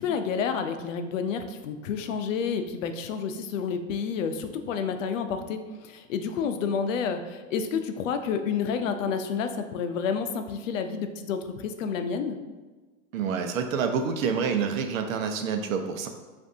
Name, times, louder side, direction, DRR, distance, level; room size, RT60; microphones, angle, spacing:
voice 1, 0.0-5.6 5.9-12.4, left 6 dB, 75° left, 8 dB, 0.6 m, -29 dB
voice 2, 13.1-16.1, right 6 dB, 85° right, 5 dB, 0.7 m, -27 dB
7.3 x 2.6 x 2.7 m, 1.3 s
supercardioid pair, 150°, 39 cm